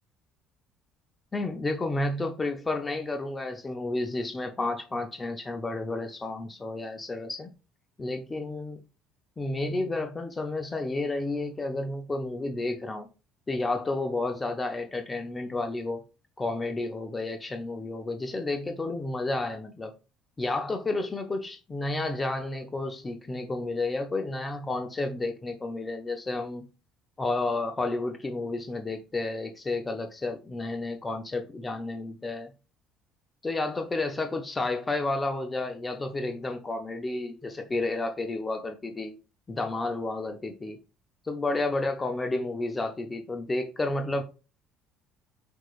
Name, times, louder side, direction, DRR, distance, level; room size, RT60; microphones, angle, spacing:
voice 1, 1.3-7.5 8.0-8.8 9.4-13.1 13.5-16.0 16.4-19.9 20.4-26.6 27.2-32.5 33.4-39.2 39.5-40.8 41.2-44.2, left 2 dB, 25° left, 0.6 m, -31 dB
5.5 x 3.0 x 2.4 m
figure-of-eight pair, 55°, 0 cm